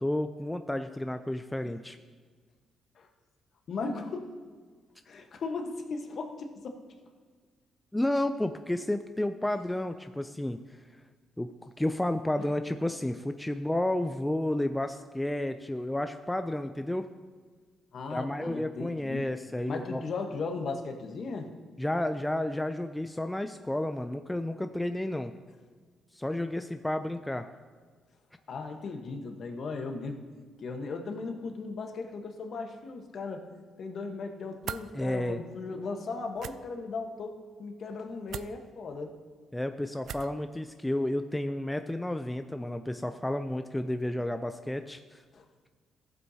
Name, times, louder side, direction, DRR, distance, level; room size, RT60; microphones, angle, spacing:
voice 1, 0.0-2.0 7.9-10.8 11.4-17.1 18.1-20.0 21.8-25.3 26.1-27.5 34.9-35.4 39.5-45.2, left 1 dB, 10° left, 8 dB, 0.3 m, -31 dB
voice 2, 3.7-4.3 5.1-6.8 12.4-12.5 17.9-19.3 19.7-21.5 28.5-30.2 30.6-33.4 33.8-37.3 37.6-39.1 45.3-45.4, left 4 dB, 55° left, 4 dB, 1.1 m, -37 dB
sound 1, 34.6-34.9 36.3-36.5 38.3-38.5 40.0-40.4, right 9 dB, 70° right, 0.3 m, -38 dB
14.5 x 7.9 x 2.8 m, 1.5 s
cardioid pair, 90°, 0 cm